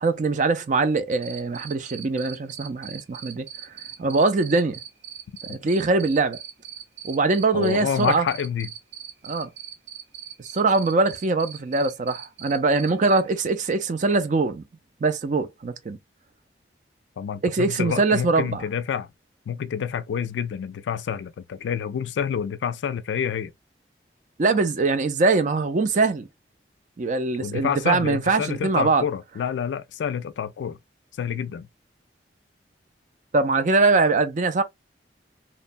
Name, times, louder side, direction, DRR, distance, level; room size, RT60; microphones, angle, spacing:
voice 1, 0.0-3.5 4.0-4.8 5.5-6.4 7.0-8.3 9.2-9.5 10.4-14.6 15.0-16.0 17.4-18.6 24.4-26.3 27.0-29.0 33.3-34.6, right 3 dB, 45° right, 0.4 m, -22 dB
Cricket, 1.2-13.2, right 10 dB, 85° right, 0.9 m, -39 dB
voice 2, 7.5-8.7 17.2-19.1 19.5-23.5 27.4-30.8 31.2-31.7, left 7 dB, 85° left, 0.3 m, -28 dB
3.0 x 2.2 x 2.4 m
head